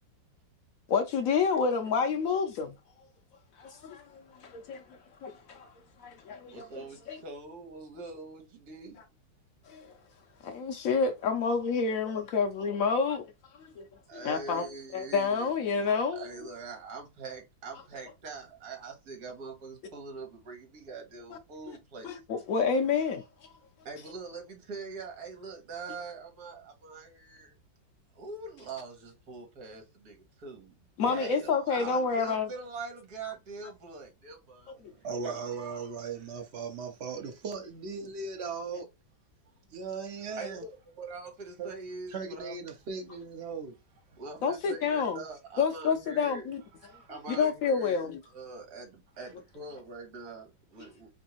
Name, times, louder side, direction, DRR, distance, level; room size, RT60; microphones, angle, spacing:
voice 1, 0.9-2.8 3.6-4.8 5.2-5.7 6.0-7.2 9.7-9.9 10.4-13.2 13.8-13.9 14.1-14.6 14.9-16.3 22.0-23.2 31.0-32.5 44.4-45.2 45.6-46.6 47.4-48.2, left 5 dB, 85° left, 0.7 m, -29 dB
voice 2, 6.5-9.0 14.1-15.8 16.1-22.1 23.8-27.6 28.1-30.7 31.0-34.7 35.2-35.9 40.4-42.5 43.1-43.2 44.1-46.5 47.1-51.1, right 4 dB, 60° right, 1.6 m, -43 dB
voice 3, 34.8-38.9 39.7-40.6 41.6-41.7 42.1-43.8 46.8-47.1, right 5 dB, 75° right, 0.6 m, -38 dB
3.3 x 2.6 x 2.8 m
omnidirectional pair, 2.0 m